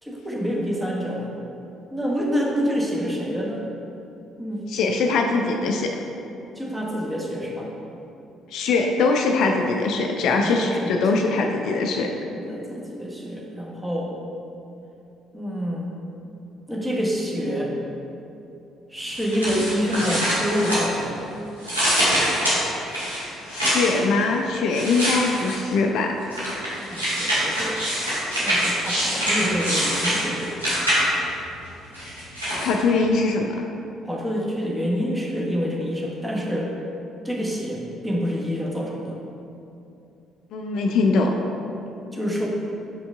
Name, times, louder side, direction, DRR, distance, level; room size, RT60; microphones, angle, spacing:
voice 1, 0.0-1.3 1.9-3.7 4.4-4.7 6.5-7.7 10.3-11.3 12.3-14.1 15.3-15.9 16.7-17.8 18.9-21.3 26.9-27.8 28.4-30.6 34.0-36.7 37.2-39.2 42.1-42.5, equal, 10° right, -3 dB, 1.1 m, -27 dB
voice 2, 4.7-5.9 8.5-12.1 23.5-26.1 32.6-33.6 40.5-41.3, left 3 dB, 55° left, 3 dB, 0.4 m, -22 dB
sound 1, 19.1-21.2 21.6-24.0 24.7-25.7 26.3-31.3 31.9-32.7, equal, 85° right, 1.3 m, -24 dB
5.3 x 5.1 x 3.6 m, 2.8 s
figure-of-eight pair, 45°, 0 cm